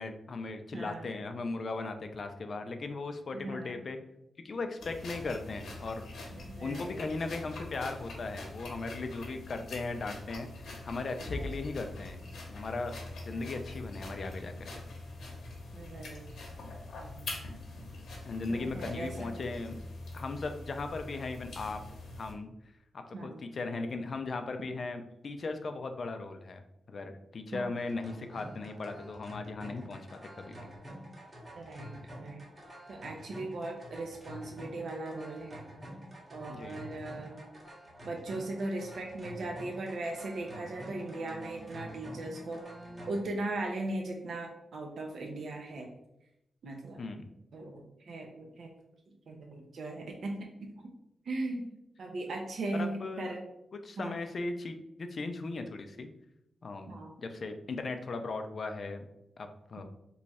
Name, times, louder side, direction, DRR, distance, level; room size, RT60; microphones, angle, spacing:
voice 1, 0.0-4.0 4.4-6.1 6.6-12.2 12.5-13.0 13.2-14.7 18.2-19.8 20.1-21.8 22.2-22.5 23.2-26.6 26.9-30.1 30.4-30.7 36.5-36.9 47.0-47.3 52.7-53.4 53.8-56.1 56.6-56.9 57.2-59.0 59.4-59.8, left 3 dB, 45° left, 7 dB, 0.3 m, -37 dB
voice 2, 0.7-1.1 3.3-3.8 6.3-7.0 11.3-11.6 13.3-13.5 15.7-16.3 17.0-17.4 18.5-19.3 23.1-23.4 27.5-27.7 31.5-32.4 32.9-35.6 36.3-37.4 38.0-42.6 43.1-45.9 46.6-47.0 47.5-48.7 49.3-50.4 50.6-50.9 51.3-53.4 54.0-54.1 56.9-57.1 59.8-59.9, right 2 dB, 65° right, 1 dB, 0.5 m, -38 dB
sound 1, 4.8-22.3, left 2 dB, 85° left, 0.8 m, -44 dB
sound 2, 27.8-43.2, equal, 20° right, 1.0 m, -48 dB
3.0 x 2.3 x 4.0 m, 0.85 s
wide cardioid pair, 150°, 0 cm